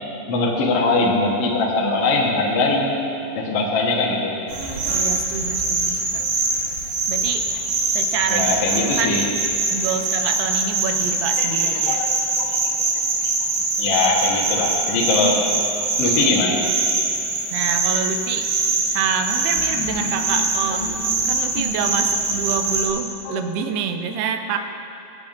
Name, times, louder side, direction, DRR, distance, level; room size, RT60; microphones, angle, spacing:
voice 1, 0.3-3.0 3.3-4.3 8.3-9.3 11.4-12.5 13.8-15.6 16.0-16.6 19.3-20.4 20.8-21.0 21.5-21.6 23.2-23.3, left 3 dB, 70° left, -2 dB, 1.4 m, -22 dB
sound 1, 4.5-22.9, right 3 dB, 70° right, 2.9 m, -23 dB
voice 2, 4.9-6.2 7.1-7.5 8.0-9.3 9.7-12.0 17.5-18.5 18.9-20.8 21.3-24.6, right 6 dB, 85° right, 6 dB, 2.7 m, -27 dB
23.0 x 7.9 x 2.6 m, 2.9 s
omnidirectional pair, 4.5 m